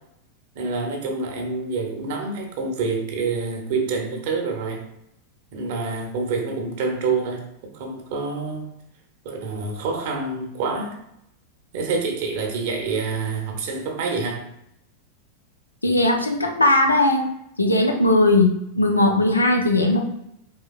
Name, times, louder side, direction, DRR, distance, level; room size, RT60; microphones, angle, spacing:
voice 1, 0.5-4.8 5.5-7.4 7.7-8.7 9.2-10.9 11.7-14.5, right 4 dB, 50° right, 1 dB, 0.9 m, -27 dB
voice 2, 15.8-17.2 17.6-20.0, left 2 dB, 80° left, 2 dB, 0.6 m, -18 dB
4.5 x 3.2 x 2.4 m, 0.78 s
figure-of-eight pair, 90°, 0 cm